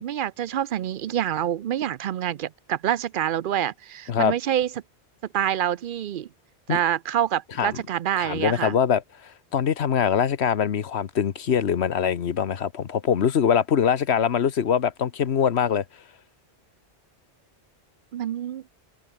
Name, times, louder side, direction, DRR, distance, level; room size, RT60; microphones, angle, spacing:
voice 1, 0.0-4.7 5.3-6.3 6.7-8.8 18.1-18.6, right 10 dB, 60° right, 0.7 m, -26 dB
voice 2, 8.2-9.0 9.5-15.8, left 8 dB, 75° left, 1.2 m, -23 dB
open air
omnidirectional pair, 1.1 m